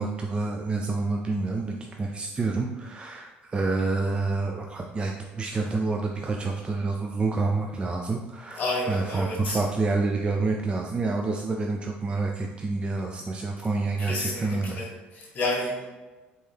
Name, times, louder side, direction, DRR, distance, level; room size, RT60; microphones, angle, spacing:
voice 1, 0.0-14.8, right 3 dB, 25° right, 1 dB, 0.4 m, -28 dB
voice 2, 8.5-9.6 14.0-15.9, left 2 dB, 45° left, -7 dB, 1.5 m, -30 dB
4.0 x 3.7 x 3.3 m, 1.2 s
cardioid pair, 100°, 4 cm